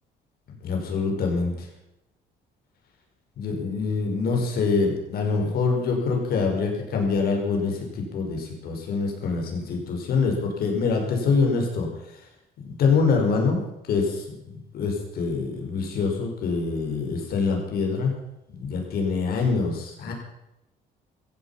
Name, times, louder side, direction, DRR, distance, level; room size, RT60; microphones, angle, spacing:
voice 1, 0.6-1.7 3.4-11.9 12.6-18.1 18.5-20.1, left 4 dB, 65° left, 2 dB, 5.4 m, -25 dB
16.0 x 15.5 x 5.9 m, 0.87 s
cardioid pair, 110°, 17 cm